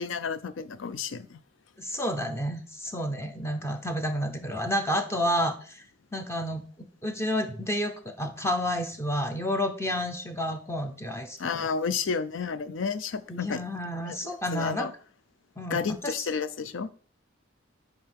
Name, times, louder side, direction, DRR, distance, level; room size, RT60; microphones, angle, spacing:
voice 1, 0.0-1.4 11.4-13.6 14.0-14.9 15.7-16.9, left 5 dB, 75° left, 14 dB, 0.5 m, -31 dB
voice 2, 1.8-5.8 6.1-6.6 7.0-11.7 13.3-14.9 15.6-16.1, equal, 15° left, 5 dB, 0.6 m, -30 dB
10.0 x 3.4 x 3.4 m, 0.43 s
head